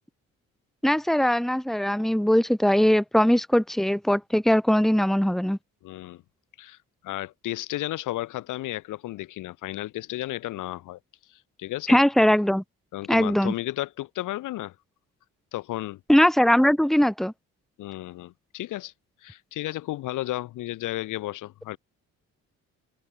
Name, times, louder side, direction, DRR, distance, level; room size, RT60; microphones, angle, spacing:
voice 1, 0.8-5.6 11.9-12.6 13.1-13.5 16.1-17.3, equal, ahead, 2.4 m, -20 dB
voice 2, 5.8-6.2 6.6-6.8 7.0-11.0 11.6-12.0 12.9-14.7 15.5-16.0 17.8-18.9 19.2-21.8, left 16 dB, 90° left, 5.7 m, -33 dB
cardioid pair, 90°, 30 cm